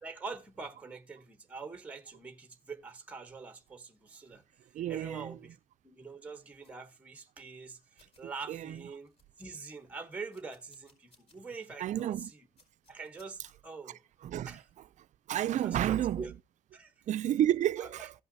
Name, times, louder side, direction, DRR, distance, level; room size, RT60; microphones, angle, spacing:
voice 1, 0.0-4.4 4.9-5.6 5.8-7.8 8.2-9.1 9.4-12.1 12.9-14.0 14.5-14.6 15.6-16.3 16.7-16.9 17.8-18.1, right 4 dB, 10° right, 0.9 m, -44 dB
voice 2, 4.7-5.4 8.2-8.8 11.8-12.3 14.2-14.6 15.3-16.3 17.1-18.1, right 11 dB, 45° right, 0.4 m, -31 dB
sound 1, 6.6-6.8 7.6-7.7 8.0-8.2 8.7-8.8 9.0-9.8 10.3-11.4 11.8-11.9 12.6-13.5, left 2 dB, 40° left, 4.7 m, -65 dB
16.5 x 5.5 x 2.7 m
cardioid pair, 110°, 17 cm